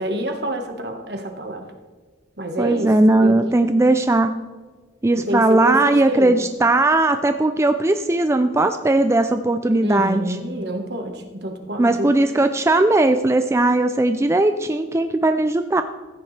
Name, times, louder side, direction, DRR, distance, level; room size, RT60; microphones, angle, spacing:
voice 1, 0.0-1.7 2.4-2.9 3.2-3.4 3.7-3.9 5.2-6.4 9.8-12.1, equal, 60° right, 4 dB, 1.5 m, -27 dB
voice 2, 2.6-4.3 5.0-10.4 11.8-15.8, right 2 dB, 15° right, 8 dB, 0.3 m, -18 dB
14.5 x 9.3 x 3.3 m, 1.4 s
head